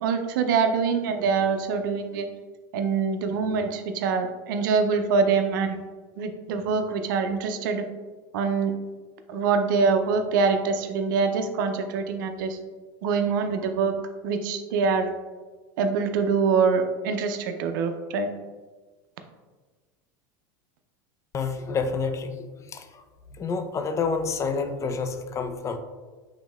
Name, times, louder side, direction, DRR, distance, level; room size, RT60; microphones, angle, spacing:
voice 1, 0.0-2.3 2.7-5.8 6.2-7.9 8.3-8.7 9.3-12.6 13.0-13.9 14.2-15.1 15.8-18.3, right 5 dB, 70° right, 7 dB, 0.5 m, -24 dB
voice 2, 21.3-23.0 23.3-25.8, left 4 dB, 25° left, 7 dB, 0.5 m, -29 dB
5.3 x 3.6 x 2.3 m, 1.4 s
hypercardioid pair, 95°, 11 cm